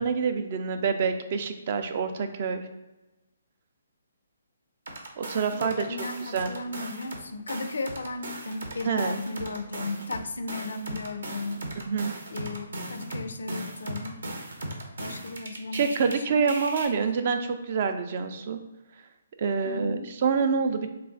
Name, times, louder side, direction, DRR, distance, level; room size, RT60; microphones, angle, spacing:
voice 1, 0.0-2.7 5.2-5.8 6.3-6.5 8.8-9.2 11.9-12.1 15.7-18.6 19.4-20.9, right 5 dB, 45° right, 7 dB, 0.4 m, -27 dB
sound 1, 4.9-7.2 7.5-16.1 16.5-16.9, right 1 dB, 75° right, 0.8 m, -38 dB
voice 2, 5.5-11.6 12.3-14.2 15.0-16.5 19.6-20.1, left 2 dB, 75° left, 8 dB, 0.4 m, -35 dB
3.3 x 2.3 x 3.8 m, 1.1 s
hypercardioid pair, 145°, 0 cm